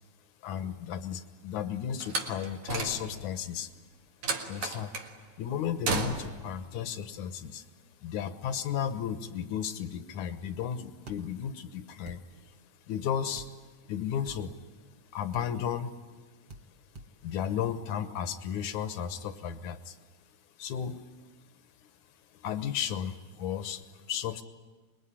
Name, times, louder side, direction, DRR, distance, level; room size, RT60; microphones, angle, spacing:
voice 1, 0.4-3.7 4.5-4.9 5.4-7.7 8.0-12.5 12.9-13.5 13.8-14.6 15.1-15.9 17.2-20.0 20.6-21.0 21.8-21.9 22.3-24.4, left 8 dB, 80° left, 11 dB, 2.5 m, -34 dB
Slam, 2.0-3.4 4.2-5.1 5.8-6.5, right 3 dB, 70° right, 3.2 m, -33 dB
sound 1, 11.1-11.2 12.0-12.2 13.4-13.5 14.2-14.4 15.3-15.5 16.5-16.6 16.9-17.1, right 1 dB, 55° right, 2.5 m, -46 dB
25.0 x 21.5 x 10.0 m, 1.3 s
omnidirectional pair, 3.4 m